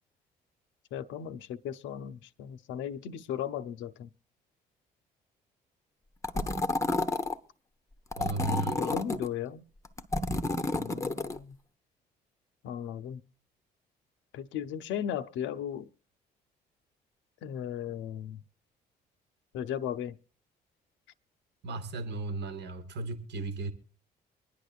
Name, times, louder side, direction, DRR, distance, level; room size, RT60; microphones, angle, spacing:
voice 1, 0.9-4.1 8.5-9.6 10.7-11.6 12.6-13.2 14.3-15.9 17.4-18.4 19.5-20.2, left 9 dB, 65° left, 0.6 m, -36 dB
sound 1, 6.2-7.4 8.1-9.3 9.9-11.4, left 2 dB, 15° left, 0.8 m, -30 dB
voice 2, 8.2-9.0 21.6-23.7, right 2 dB, 55° right, 1.2 m, -35 dB
24.0 x 10.0 x 2.4 m
hypercardioid pair, 50°, 21 cm